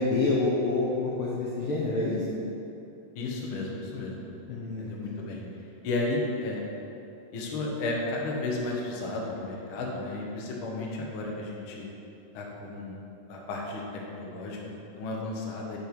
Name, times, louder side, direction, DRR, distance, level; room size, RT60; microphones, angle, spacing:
voice 1, 0.0-2.2 4.5-5.4, left 3 dB, 80° left, -6 dB, 1.2 m, -28 dB
voice 2, 3.1-5.4 5.8-6.6 7.3-11.8 12.3-13.0 13.3-13.8 14.1-15.8, left 2 dB, 60° left, -2 dB, 1.4 m, -33 dB
7.9 x 5.5 x 5.1 m, 2.8 s
omnidirectional pair, 3.7 m